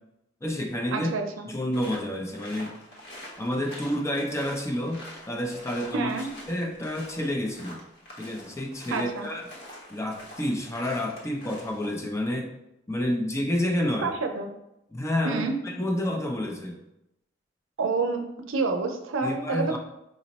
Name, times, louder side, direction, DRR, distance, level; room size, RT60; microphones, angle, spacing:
voice 1, 0.4-1.1 1.5-2.8 3.4-6.1 6.5-7.8 8.2-9.4 9.9-12.5 12.9-14.1 14.9-16.8 19.2-19.8, left 1 dB, 15° left, 3 dB, 0.5 m, -29 dB
voice 2, 0.9-1.5 5.9-6.3 8.9-9.3 14.0-14.5 15.2-15.5 17.8-19.8, right 4 dB, 90° right, 5 dB, 0.6 m, -28 dB
sound 1, 1.7-12.0, left 1 dB, 55° left, 1.1 m, -46 dB
5.0 x 2.1 x 4.0 m, 0.85 s
head